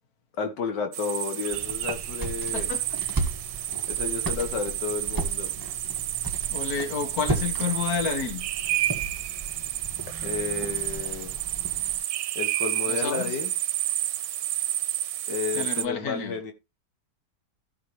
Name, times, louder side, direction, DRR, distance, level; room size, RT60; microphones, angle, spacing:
voice 1, 0.4-2.7 3.9-5.5 10.2-11.3 12.4-13.5 15.3-16.5, left 5 dB, 80° left, 1.8 m, -32 dB
sound 1, 0.9-15.9, right 13 dB, 80° right, 1.3 m, -30 dB
sound 2, 1.5-12.0, right 3 dB, 10° right, 1.5 m, -35 dB
voice 2, 2.5-3.0 6.5-8.5 12.9-13.4 15.5-16.4, left 6 dB, 60° left, 2.0 m, -30 dB
14.5 x 5.7 x 3.2 m
omnidirectional pair, 1.8 m